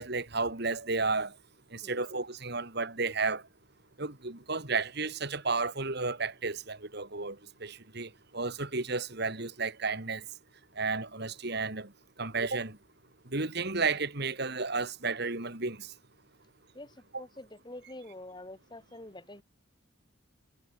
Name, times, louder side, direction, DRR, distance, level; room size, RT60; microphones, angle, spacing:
voice 1, 0.0-1.3 1.7-3.4 4.0-10.2 10.8-11.9 12.2-12.8 13.3-15.9 17.1-17.2, right 4 dB, 50° right, 2.6 m, -32 dB
voice 2, 17.2-19.4, left 1 dB, 20° left, 1.8 m, -46 dB
head